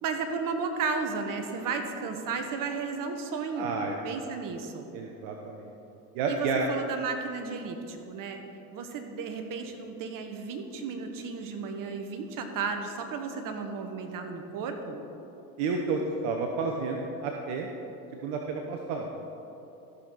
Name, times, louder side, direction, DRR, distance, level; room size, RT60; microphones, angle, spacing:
voice 1, 0.0-3.8 4.0-4.9 6.3-8.4 8.7-15.0, right 5 dB, 45° right, 6 dB, 1.3 m, -34 dB
voice 2, 3.6-4.0 4.9-5.7 6.1-6.7 15.6-17.7 18.2-19.1, right 4 dB, 60° right, 2 dB, 1.0 m, -31 dB
14.5 x 6.3 x 4.0 m, 2.9 s
hypercardioid pair, 85°, 45 cm